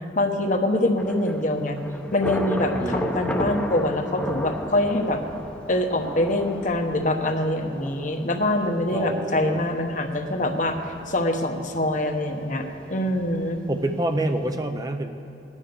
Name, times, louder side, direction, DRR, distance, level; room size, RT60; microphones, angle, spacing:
voice 1, 0.2-1.8 2.1-5.2 5.7-10.8 11.1-13.6, left 1 dB, 45° left, 5 dB, 1.0 m, -24 dB
Thunder / Rain, 1.0-14.5, equal, 5° left, 0.8 m, -35 dB
voice 2, 8.9-9.6 13.7-15.1, right 1 dB, 20° right, 7 dB, 0.5 m, -27 dB
16.5 x 9.9 x 6.8 m, 2.8 s
head